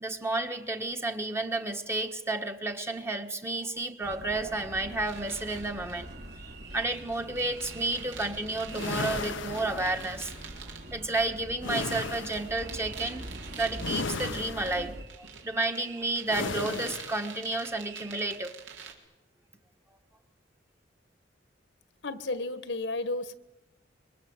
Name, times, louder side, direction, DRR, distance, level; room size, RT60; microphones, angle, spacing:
voice 1, 0.0-6.1 6.7-10.3 10.9-13.2 13.6-18.5, right 2 dB, 15° right, 5 dB, 1.5 m, -31 dB
sound 1, 4.0-15.0, right 1 dB, 55° right, 3.2 m, -44 dB
sound 2, 5.1-18.9, right 6 dB, 75° right, 4.0 m, -47 dB
sound 3, 8.7-10.3 11.6-12.6 13.8-14.9 16.3-17.2, left 3 dB, 85° left, 1.1 m, -35 dB
voice 2, 22.0-23.3, left 2 dB, 70° left, 12 dB, 1.6 m, -32 dB
26.0 x 24.0 x 8.0 m, 1.0 s
head